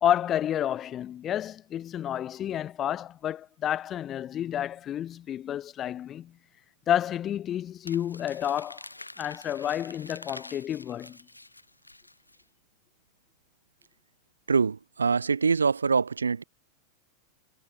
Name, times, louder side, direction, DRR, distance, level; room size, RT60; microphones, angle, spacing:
voice 1, 0.0-6.3 6.9-8.8 9.2-11.2, left 10 dB, 30° left, 1.5 m, -30 dB
Crumpling crinkling, 7.8-12.4, left 2 dB, 85° left, 3.5 m, -46 dB
voice 2, 14.5-16.4, right 5 dB, 75° right, 1.4 m, -24 dB
figure-of-eight pair, 90°, 0 cm